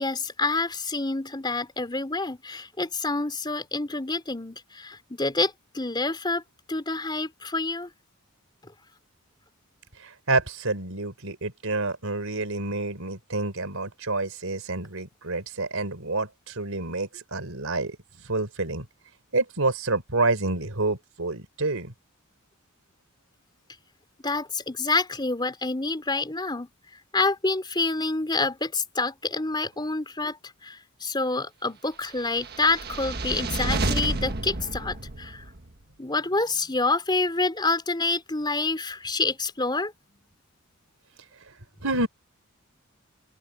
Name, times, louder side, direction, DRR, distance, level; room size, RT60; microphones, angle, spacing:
voice 1, 0.0-6.4 6.7-7.9 24.2-26.7 27.1-30.4 30.6-35.4 36.0-39.9, left 3 dB, 20° left, 3.8 m, -27 dB
voice 2, 10.0-18.0 18.3-18.9 19.3-21.9 41.8-42.1, right 2 dB, 80° right, 3.9 m, -28 dB
sound 1, 32.3-35.7, right 2 dB, 50° right, 1.5 m, -30 dB
open air
head